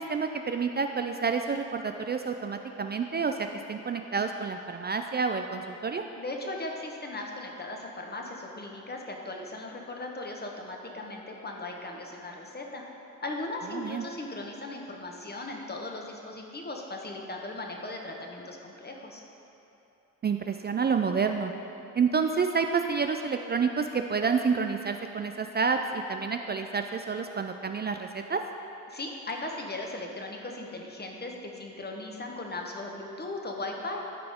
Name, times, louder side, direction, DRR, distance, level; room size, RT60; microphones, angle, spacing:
voice 1, 0.0-6.0 13.7-14.0 20.2-21.5 22.0-28.4, right 5 dB, 25° right, 6 dB, 0.4 m, -29 dB
voice 2, 6.2-12.8 13.2-19.2 28.9-34.0, left 2 dB, 25° left, 1 dB, 1.3 m, -38 dB
13.0 x 4.8 x 3.6 m, 2.9 s
hypercardioid pair, 50°, 41 cm